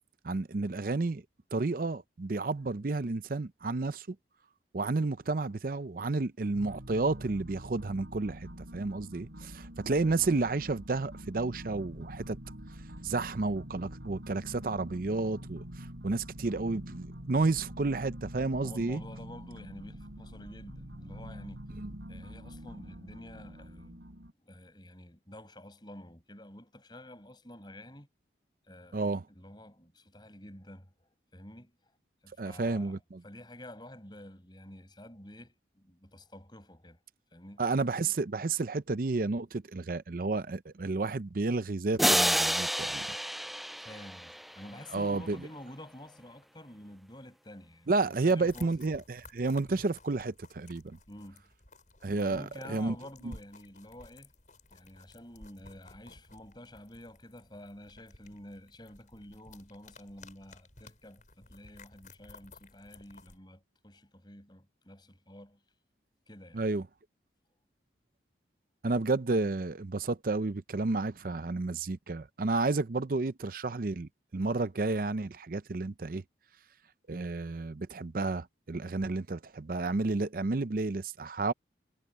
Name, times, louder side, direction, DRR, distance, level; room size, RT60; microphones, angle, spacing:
voice 1, 0.2-1.2 1.5-4.2 4.7-12.4 13.0-19.0 21.7-21.9 28.9-29.2 32.4-33.2 37.6-43.1 44.9-45.4 47.9-51.0 52.0-53.0 53.2-53.3 66.5-66.9 68.8-76.2 77.1-81.5, right 3 dB, 50° right, 0.5 m, -31 dB
sound 1, 6.5-24.3, equal, 70° right, 4.5 m, -45 dB
voice 2, 10.0-10.4 18.6-21.7 22.1-24.0 24.4-28.1 28.7-31.8 32.2-32.9 33.2-37.0 37.3-37.7 43.8-48.7 51.1-51.5 52.1-54.3 54.7-65.6 66.3-66.6, left 1 dB, 25° left, 6.2 m, -49 dB
sound 2, 42.0-44.7, equal, ahead, 0.3 m, -29 dB
sound 3, 48.3-63.4, left 2 dB, 45° left, 7.3 m, -55 dB
head